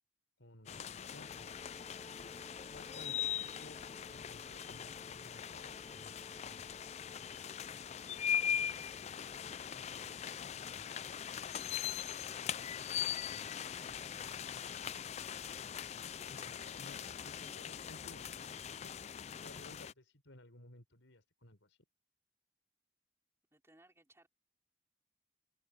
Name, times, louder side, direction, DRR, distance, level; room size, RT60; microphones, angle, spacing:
voice 1, 0.4-2.1 2.7-3.8 4.1-7.6 8.5-9.5 9.9-11.3 12.6-14.2 16.3-18.6 19.4-21.8, left 1 dB, 85° left, 5.2 m, -59 dB
sound 1, 0.7-19.9, left 8 dB, 35° left, 0.3 m, -41 dB
Wind instrument woodwind instrument, 1.1-11.1, equal, 10° left, 2.0 m, -60 dB
voice 2, 17.0-17.5 23.5-24.3, right 1 dB, 15° right, 5.0 m, -64 dB
head